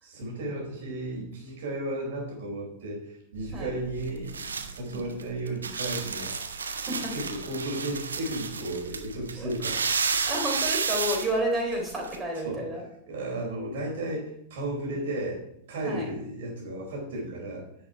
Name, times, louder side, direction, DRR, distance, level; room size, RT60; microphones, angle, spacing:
voice 1, 0.0-6.6 7.1-9.8 12.4-12.6 13.1-15.4 15.7-17.6, right 1 dB, 55° right, -2 dB, 4.5 m, -34 dB
sound 1, 3.3-12.2, right 5 dB, 75° right, 0.9 m, -32 dB
voice 2, 4.9-5.2 6.6-7.1 9.4-9.5 10.3-12.8 15.8-16.1, right 1 dB, 15° right, -1 dB, 3.8 m, -31 dB
10.0 x 7.0 x 4.7 m, 0.75 s
figure-of-eight pair, 90°, 0 cm